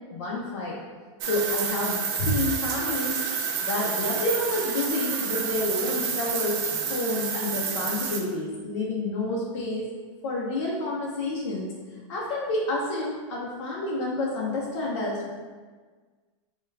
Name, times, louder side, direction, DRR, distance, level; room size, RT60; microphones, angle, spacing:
voice 1, 0.1-0.8 1.2-3.2 3.6-6.6 6.9-9.9 10.2-11.7 12.1-15.3, left 2 dB, 60° left, -4 dB, 0.7 m, -29 dB
sound 1, 1.2-8.2, right 6 dB, 40° right, 0.4 m, -29 dB
4.4 x 2.3 x 3.3 m, 1.4 s
supercardioid pair, 170°, 17 cm